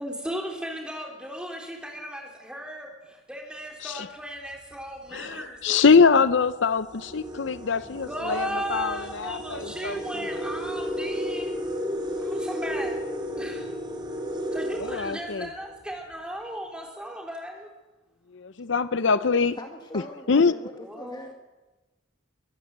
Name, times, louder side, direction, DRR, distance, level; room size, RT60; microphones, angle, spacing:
voice 1, 0.0-5.9 7.8-11.5 12.2-13.0 13.4-13.7 14.5-17.7 20.7-21.2, equal, 5° right, 1 dB, 3.8 m, -36 dB
sound 1, 4.5-4.8 5.6-5.7 6.1-15.9, equal, 25° right, 3.3 m, -33 dB
voice 2, 5.1-10.3 14.8-15.5 18.3-19.6 20.3-20.5, left 5 dB, 70° left, 15 dB, 0.6 m, -23 dB
voice 3, 19.6-21.3, left 1 dB, 20° left, 4 dB, 1.6 m, -41 dB
23.5 x 15.0 x 8.0 m, 1.2 s
head